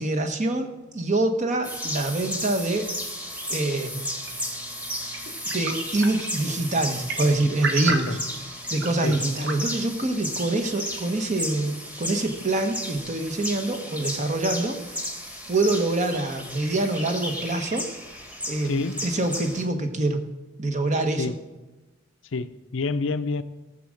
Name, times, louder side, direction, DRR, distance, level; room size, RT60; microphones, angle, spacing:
voice 1, 0.0-2.9 3.5-4.1 5.5-8.2 8.7-15.0 15.5-17.9 18.5-20.2 20.6-21.3, right 2 dB, 35° right, 1.2 m, -25 dB
sound 1, 1.6-19.7, equal, 10° right, 1.5 m, -34 dB
sound 2, 4.2-9.6, right 3 dB, 60° right, 1.4 m, -35 dB
voice 2, 7.9-8.2 9.0-9.2 18.6-19.1 21.2-21.4 22.3-23.4, left 3 dB, 65° left, 0.6 m, -28 dB
17.5 x 7.5 x 6.4 m
head